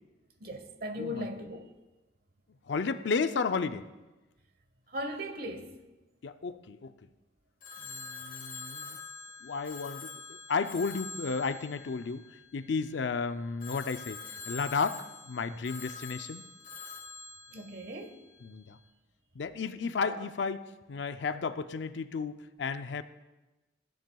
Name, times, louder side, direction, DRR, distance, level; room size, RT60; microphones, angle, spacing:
voice 1, 0.4-1.7 4.9-5.7 17.5-18.2 20.0-20.2, equal, 60° right, 1.0 m, -38 dB
voice 2, 2.7-3.8 6.2-6.9 7.8-9.0 9.4-12.2 12.5-16.5 18.4-18.8 19.3-23.0, left 4 dB, 70° left, 0.5 m, -33 dB
Telephone, 7.6-12.9 13.6-18.5, left 4 dB, 50° left, 1.3 m, -45 dB
16.0 x 10.0 x 2.3 m
head